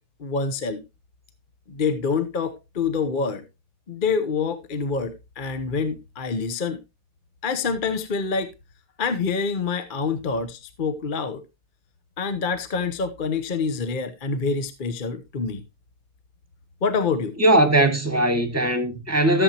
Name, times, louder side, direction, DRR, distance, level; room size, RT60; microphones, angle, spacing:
voice 1, 0.2-0.8 1.7-3.4 3.9-6.8 7.4-8.5 9.0-11.4 12.2-15.6 16.8-17.3, left 5 dB, 40° left, 0.9 m, -26 dB
voice 2, 17.4-19.4, right 1 dB, 10° right, 1.6 m, -19 dB
14.0 x 7.9 x 2.8 m
omnidirectional pair, 1.7 m